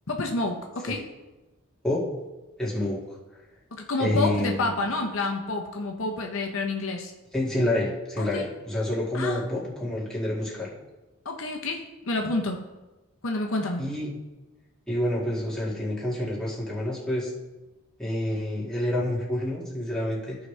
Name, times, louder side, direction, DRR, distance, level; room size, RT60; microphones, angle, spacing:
voice 1, 0.1-1.0 3.7-7.1 8.2-8.5 9.1-9.4 11.2-12.6 13.2-13.8, left 2 dB, 65° left, 2 dB, 0.9 m, -29 dB
voice 2, 2.6-3.2 4.0-4.7 7.3-10.7 13.8-14.2 14.9-17.3 18.0-20.5, left 1 dB, 5° left, -7 dB, 1.9 m, -28 dB
14.5 x 5.0 x 3.3 m, 1.1 s
head